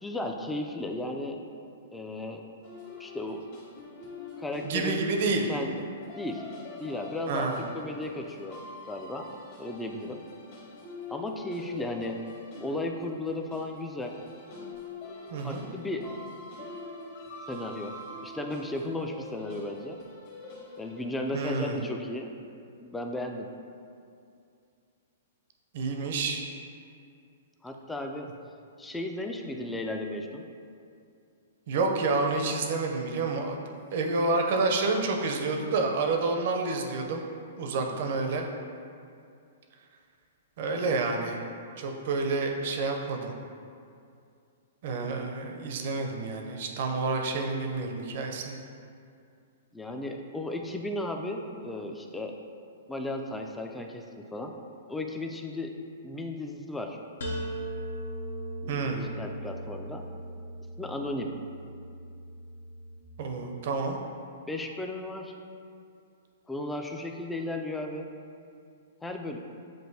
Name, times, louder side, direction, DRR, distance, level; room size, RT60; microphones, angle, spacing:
voice 1, 0.0-1.4 1.9-2.5 3.0-3.5 4.4-5.0 5.5-5.8 6.1-6.4 6.8-8.6 8.9-9.3 9.6-10.2 11.1-12.2 12.6-14.2 15.4-16.2 17.5-18.0 18.2-20.0 20.8-22.4 22.8-23.5 26.0-26.1 27.6-28.3 28.8-30.5 37.9-38.0 49.7-52.4 52.9-54.6 54.9-55.8 56.0-57.0 58.6-60.0 60.8-61.4 64.5-65.3 66.5-68.1 69.0-69.4, left 1 dB, 5° left, 3 dB, 0.3 m, -35 dB
sound 1, 2.6-21.4, left 2 dB, 50° left, 1.3 m, -45 dB
voice 2, 4.6-5.5 7.3-7.6 15.3-15.7 21.3-21.8 25.7-26.4 31.7-33.6 33.9-37.2 37.6-38.5 40.6-41.4 41.8-43.3 44.8-48.6 58.7-59.0 63.2-64.0, right 3 dB, 55° right, 2 dB, 0.6 m, -29 dB
sound 2, 57.2-63.0, right 1 dB, 80° left, 0.7 m, -38 dB
7.6 x 2.5 x 2.7 m, 2.4 s
hypercardioid pair, 135°, 0 cm